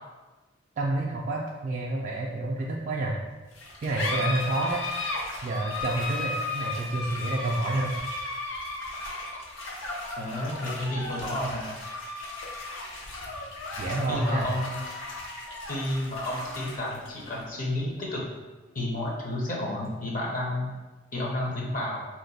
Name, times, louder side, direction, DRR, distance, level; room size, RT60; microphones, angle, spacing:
voice 1, 0.8-3.2 3.8-4.8 5.4-8.0 13.8-14.5, right 2 dB, 40° right, -3 dB, 0.3 m, -29 dB
sound 1, 3.5-20.5, left 2 dB, 85° left, 0.7 m, -36 dB
voice 2, 10.2-11.8 14.1-14.9 15.7-18.2 18.7-20.7 21.1-22.1, left 1 dB, 45° left, -2 dB, 0.7 m, -31 dB
2.9 x 2.2 x 4.0 m, 1.2 s
head